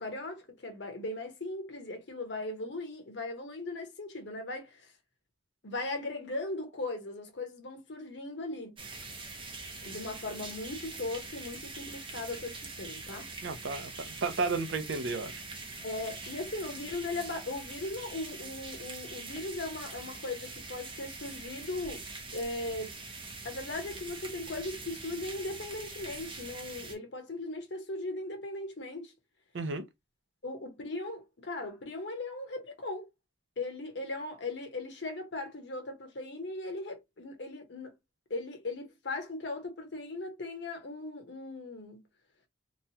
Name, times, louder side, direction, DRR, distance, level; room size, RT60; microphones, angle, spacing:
voice 1, 0.0-4.9 5.6-8.8 9.8-13.3 15.8-22.0 22.3-23.0 23.4-29.1 30.4-33.1 33.6-37.9 38.3-42.0, left 2 dB, 60° left, 0.8 m, -38 dB
sound 1, 8.8-27.0, right 3 dB, 25° right, 0.6 m, -44 dB
voice 2, 13.4-15.4 29.5-29.9, right 4 dB, 70° right, 0.5 m, -33 dB
3.0 x 2.2 x 2.7 m
head